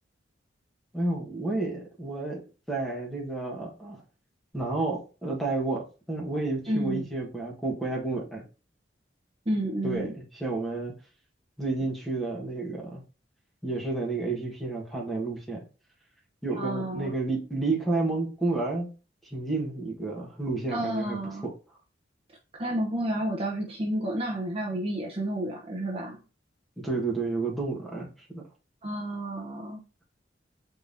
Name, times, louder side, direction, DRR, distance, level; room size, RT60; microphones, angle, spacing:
voice 1, 0.9-2.4 2.7-4.0 4.5-8.4 9.8-10.9 11.6-13.0 13.6-15.6 16.4-18.9 19.3-21.2 26.8-28.4, right 3 dB, ahead, 1.4 m, -30 dB
voice 2, 6.7-7.1 9.5-10.1 16.5-17.1 20.7-21.5 22.6-26.2 28.8-29.8, right 1 dB, 30° right, 0.8 m, -30 dB
4.5 x 3.6 x 2.7 m
head